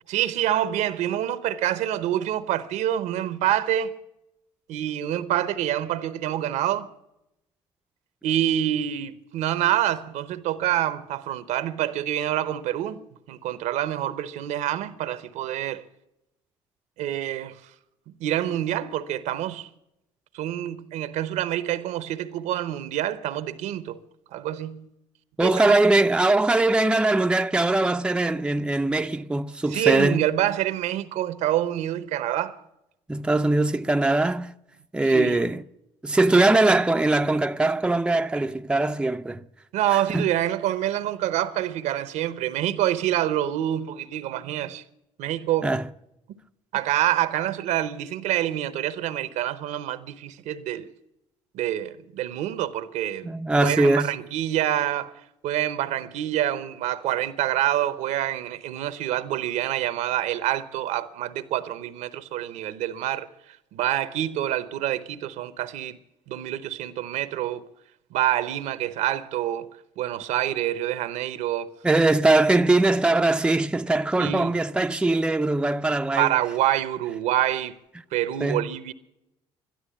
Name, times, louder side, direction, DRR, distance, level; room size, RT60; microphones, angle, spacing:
voice 1, 0.1-3.9 4.7-6.9 8.2-13.0 13.3-15.8 17.0-17.6 18.2-19.7 20.3-24.0 24.3-24.9 25.4-25.8 29.7-32.6 35.1-35.4 39.7-44.8 45.2-45.7 46.7-50.9 51.5-53.3 53.6-63.3 63.7-66.0 66.3-67.6 68.1-71.7 74.2-74.5 76.2-77.7 78.1-78.9, right 12 dB, 75° right, 0.8 m, -26 dB
voice 2, 25.4-30.2 33.1-34.5 34.9-35.6 36.0-39.5 40.1-40.2 45.6-45.8 53.2-54.1 71.8-76.3 78.4-78.7, right 2 dB, 10° right, 0.5 m, -21 dB
12.5 x 12.0 x 8.3 m
supercardioid pair, 70°, 12 cm